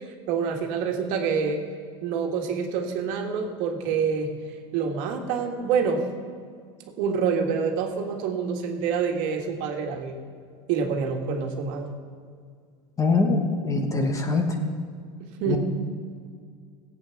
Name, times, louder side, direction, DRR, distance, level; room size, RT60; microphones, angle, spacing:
voice 1, 0.3-1.6 2.0-4.3 4.7-6.0 7.0-10.2 10.7-11.9 15.4-15.6, right 6 dB, 60° right, 3 dB, 1.7 m, -26 dB
voice 2, 13.0-14.4 15.5-15.6, left 3 dB, 20° left, 5 dB, 1.3 m, -23 dB
16.5 x 8.5 x 5.9 m, 2.1 s
supercardioid pair, 135°, 16 cm